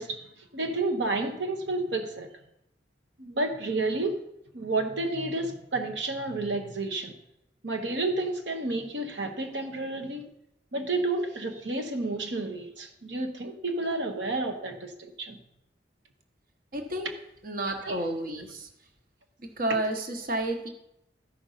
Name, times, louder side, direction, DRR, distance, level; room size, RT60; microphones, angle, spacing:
voice 1, 0.0-2.3 3.2-4.2 4.5-7.1 7.6-10.3 10.7-15.4 17.8-18.0, right 2 dB, 80° right, 4 dB, 1.1 m, -31 dB
voice 2, 16.7-17.1 17.4-18.7 19.4-20.7, right 1 dB, 55° right, 4 dB, 1.1 m, -31 dB
13.5 x 5.2 x 5.6 m, 0.82 s
head